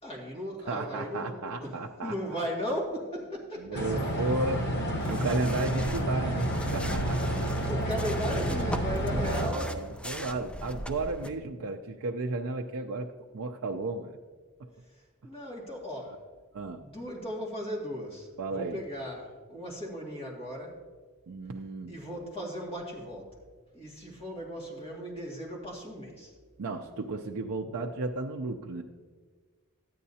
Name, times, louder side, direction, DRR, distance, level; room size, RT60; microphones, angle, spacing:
voice 1, 0.0-1.7 2.0-3.8 7.7-9.7 15.2-16.2 16.8-20.8 21.9-23.3 23.7-26.3, equal, 25° left, -2 dB, 2.2 m, -36 dB
voice 2, 0.7-2.1 3.6-4.6 5.1-7.4 9.0-13.1 13.3-14.1 16.5-16.8 18.4-18.8 21.3-21.9 26.6-28.8, right 3 dB, 65° right, 2 dB, 0.5 m, -33 dB
sound 1, 3.7-9.5, right 1 dB, 50° left, 1.3 m, -30 dB
sound 2, 5.0-11.3, equal, 5° left, 0.4 m, -40 dB
13.0 x 9.4 x 2.8 m, 1.5 s
head